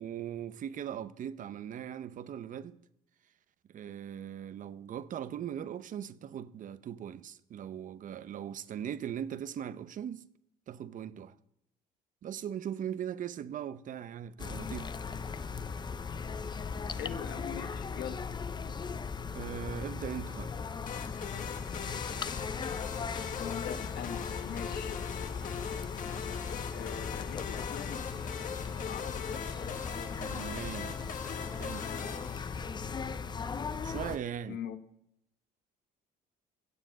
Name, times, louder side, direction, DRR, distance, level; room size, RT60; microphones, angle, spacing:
voice 1, 0.0-2.8 3.7-10.2 10.7-11.3 12.2-14.9 19.3-20.5 30.2-31.0 31.5-31.9 33.8-34.6, right 9 dB, 50° right, 0.8 m, -39 dB
sound 1, 14.4-34.2, left 5 dB, 25° left, 0.6 m, -38 dB
voice 2, 17.0-18.2 23.3-25.0 26.7-28.0 28.8-29.3 34.5-34.8, left 9 dB, 70° left, 1.3 m, -42 dB
sound 2, 20.9-33.0, left 7 dB, 50° left, 1.5 m, -41 dB
16.0 x 7.7 x 7.9 m
cardioid pair, 110°, 17 cm